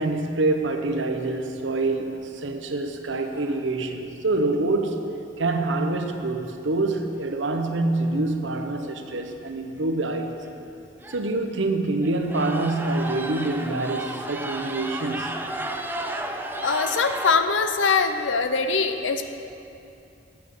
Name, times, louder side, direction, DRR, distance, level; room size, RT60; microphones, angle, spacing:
voice 1, 0.0-5.0 5.4-10.4 11.1-15.3, right 2 dB, 85° right, 5 dB, 0.8 m, -26 dB
sound 1, 1.7-2.1 2.7-2.8 3.1-3.7 6.9-7.0 8.1-8.2 8.4-8.8 9.3-9.4 10.1-10.2 10.4-10.6 11.0-11.4 12.0-17.3, right 1 dB, 10° right, 0.5 m, -34 dB
voice 2, 16.6-19.3, left 4 dB, 85° left, 8 dB, 0.7 m, -22 dB
8.5 x 7.0 x 7.9 m, 2.7 s
head